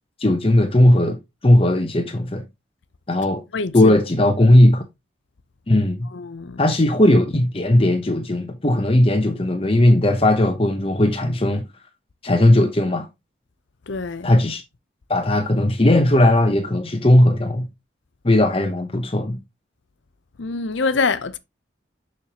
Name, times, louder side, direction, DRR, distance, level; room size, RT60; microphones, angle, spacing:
voice 1, 0.2-2.4 3.1-3.4 3.7-4.8 5.7-6.1 6.6-11.6 12.2-13.1 14.2-14.6 15.1-17.7 18.2-19.4, left 1 dB, 30° left, 0.8 m, -17 dB
voice 2, 3.5-3.9 6.1-6.8 13.9-14.4 20.4-21.4, left 4 dB, 70° left, 0.7 m, -25 dB
7.0 x 6.4 x 2.9 m
head